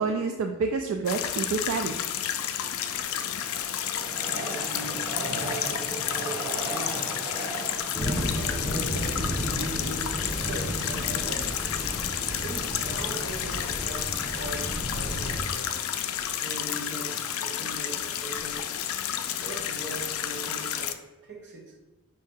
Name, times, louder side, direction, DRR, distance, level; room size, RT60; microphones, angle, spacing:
voice 1, 0.0-2.0, right 4 dB, 70° right, 5 dB, 0.3 m, -28 dB
sound 1, 1.1-20.9, left 10 dB, 75° left, 0.3 m, -31 dB
Train, 2.6-9.7 10.2-10.3 10.5-10.6, right 2 dB, 20° right, 1.4 m, -38 dB
voice 2, 4.1-7.2 8.0-11.7 12.3-15.7 16.4-18.7 19.3-21.8, right 2 dB, 50° right, 0 dB, 0.8 m, -40 dB
sound 2, 7.9-15.4, equal, 5° right, 0.8 m, -33 dB
5.3 x 2.8 x 3.6 m, 1.1 s
head